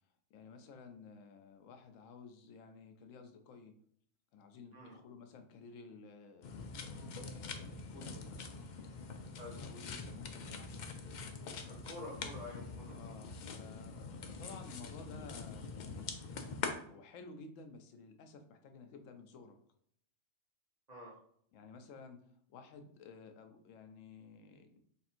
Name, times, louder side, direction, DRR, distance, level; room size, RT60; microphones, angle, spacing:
voice 1, 0.3-3.7 4.3-6.6 7.1-8.6 9.6-11.0 12.9-16.2 16.9-19.6 21.5-22.2 22.5-24.8, left 4 dB, 90° left, 6 dB, 1.0 m, -54 dB
sound 1, 6.4-16.7, left 4 dB, 65° left, 0.4 m, -44 dB
voice 2, 11.7-13.1 20.9-21.1, left 1 dB, 35° right, -4 dB, 1.3 m, -48 dB
3.5 x 2.5 x 4.3 m, 0.66 s
omnidirectional pair, 1.3 m